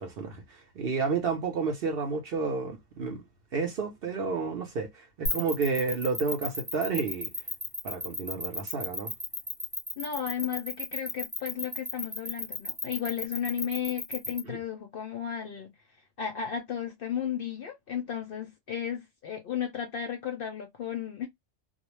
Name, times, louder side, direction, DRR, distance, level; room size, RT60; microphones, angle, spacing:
voice 1, 0.0-3.2 3.5-7.3 7.8-9.1 14.5-14.6, right 5 dB, 60° right, 0.7 m, -31 dB
sound 1, 5.3-14.4, left 1 dB, 5° right, 0.7 m, -34 dB
voice 2, 10.0-15.7 16.2-21.3, left 8 dB, 60° left, 0.6 m, -34 dB
2.3 x 2.0 x 2.9 m
omnidirectional pair, 1.3 m